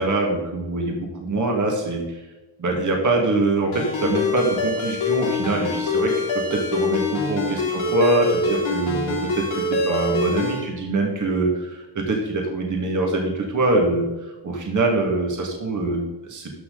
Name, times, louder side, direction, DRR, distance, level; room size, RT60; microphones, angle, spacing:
voice 1, 0.0-2.0 2.6-14.1 14.4-16.5, right 2 dB, 40° right, 1 dB, 2.1 m, -23 dB
Ringtone, 3.7-10.6, left 3 dB, 90° left, 3.3 m, -25 dB
13.5 x 6.0 x 4.0 m, 1.1 s
cardioid pair, 105°, 47 cm